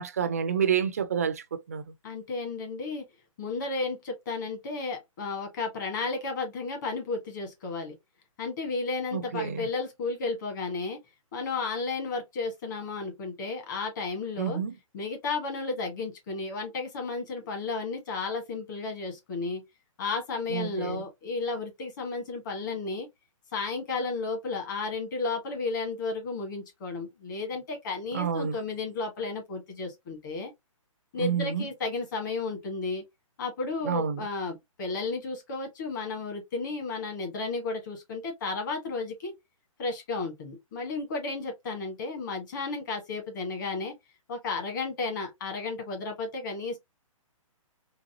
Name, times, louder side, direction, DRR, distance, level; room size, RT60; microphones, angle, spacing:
voice 1, 0.0-1.8 9.1-9.7 14.4-14.7 20.5-21.0 28.1-28.6 31.2-31.7 33.8-34.2, right 7 dB, 25° right, 0.4 m, -29 dB
voice 2, 2.0-3.1 3.4-8.0 8.4-11.0 11.3-14.6 14.9-19.6 20.0-23.1 23.5-30.5 31.1-33.0 33.4-39.3 39.8-43.9 44.3-46.8, left 3 dB, 35° left, 1.7 m, -33 dB
3.9 x 3.2 x 2.9 m
hypercardioid pair, 175°, 18 cm